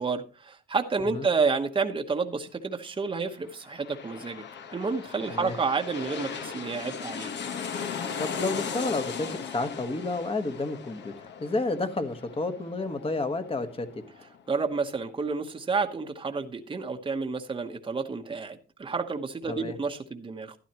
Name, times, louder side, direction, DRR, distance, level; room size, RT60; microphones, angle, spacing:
voice 1, 0.0-4.4 4.7-7.3 14.5-20.6, right 4 dB, 25° right, 1.0 m, -30 dB
sound 1, 3.4-14.7 15.1-15.2, left 7 dB, 60° left, 1.3 m, -38 dB
voice 2, 8.2-14.0 19.5-19.8, left 2 dB, 30° left, 1.4 m, -31 dB
12.5 x 10.5 x 3.0 m
cardioid pair, 90°, 20 cm